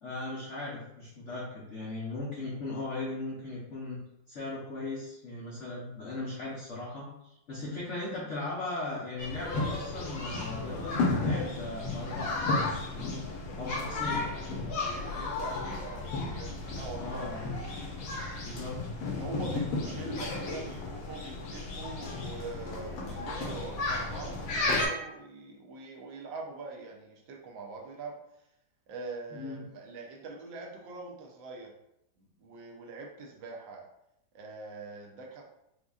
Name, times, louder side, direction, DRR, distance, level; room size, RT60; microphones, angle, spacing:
voice 1, 0.0-4.0 4.3-7.1 7.5-13.2 13.6-14.3 17.0-17.5 18.4-18.7 20.0-20.1 29.3-29.6, left 2 dB, 70° left, -6 dB, 0.7 m, -38 dB
sound 1, 9.2-24.9, left 3 dB, 85° left, 1.6 m, -33 dB
voice 2, 14.8-17.3 19.1-28.1 28.9-31.7 32.2-33.9 34.3-35.4, right 3 dB, 75° right, -1 dB, 1.3 m, -43 dB
5.0 x 2.2 x 2.4 m, 0.82 s
omnidirectional pair, 2.2 m